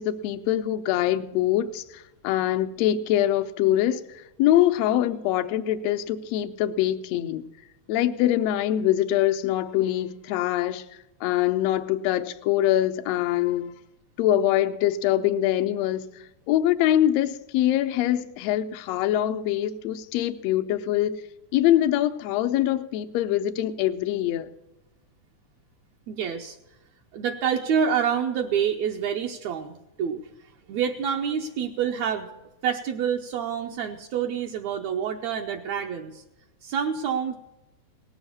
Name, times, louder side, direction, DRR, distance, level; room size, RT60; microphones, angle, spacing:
voice 1, 0.0-7.4 7.9-10.8 11.2-13.7 14.2-21.2 21.5-24.5, left 12 dB, 75° left, 8 dB, 1.6 m, -24 dB
voice 2, 26.1-26.6 27.1-29.7 30.0-30.2 30.7-32.3 32.6-36.2 36.6-37.3, right 7 dB, 75° right, 2 dB, 1.9 m, -27 dB
18.5 x 7.2 x 6.9 m, 0.96 s
omnidirectional pair, 3.5 m